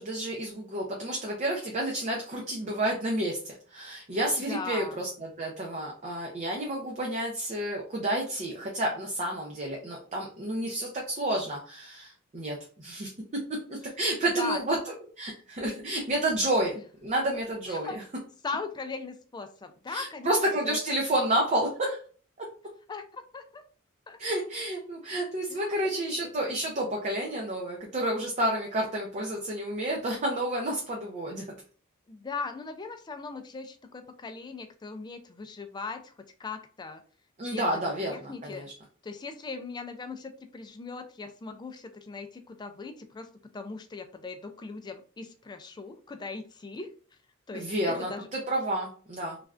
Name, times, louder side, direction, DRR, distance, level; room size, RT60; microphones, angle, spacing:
voice 1, 0.0-16.8 17.0-18.0 19.9-22.0 22.4-22.5 24.2-31.4 37.4-38.7 47.5-49.4, right 1 dB, 35° right, 0 dB, 0.5 m, -30 dB
voice 2, 4.5-5.0 14.4-14.6 17.7-18.0 18.4-20.4 20.6-20.8 22.9-23.6 24.1-24.2 25.5-26.1 32.1-36.1 36.4-37.0 37.5-37.7 38.1-38.7 39.0-43.3 43.5-46.9 47.5-48.3, left 4 dB, 20° left, 7 dB, 0.3 m, -39 dB
3.2 x 2.4 x 2.3 m, 0.42 s
head